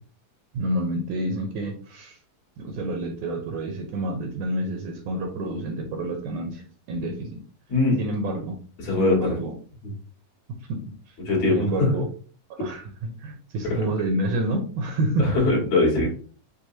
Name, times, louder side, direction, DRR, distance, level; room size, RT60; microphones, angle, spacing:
voice 1, 0.5-2.2 2.6-7.4 8.0-8.6 9.0-9.5 10.7-11.2 11.5-12.1 12.5-15.4, right 1 dB, 75° right, 3 dB, 1.9 m, -28 dB
voice 2, 8.8-9.4 9.8-10.0 11.3-11.9 13.7-13.8 15.2-16.1, left 2 dB, 60° left, -3 dB, 2.6 m, -22 dB
6.2 x 2.6 x 2.7 m, 0.42 s
omnidirectional pair, 3.8 m